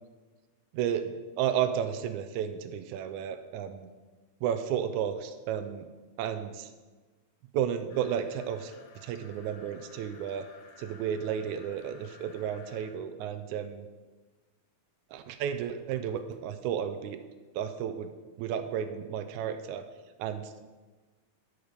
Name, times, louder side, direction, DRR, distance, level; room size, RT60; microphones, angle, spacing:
voice 1, 0.7-3.9 4.4-5.9 6.2-6.7 7.5-8.7 9.0-10.5 10.8-13.9 15.1-17.2 17.6-18.1 18.4-19.8 20.2-20.5, right 9 dB, 80° right, 8 dB, 2.0 m, -32 dB
sound 1, 7.9-12.9, left 4 dB, 60° left, 1.6 m, -54 dB
12.5 x 6.5 x 5.2 m, 1.3 s
omnidirectional pair, 3.5 m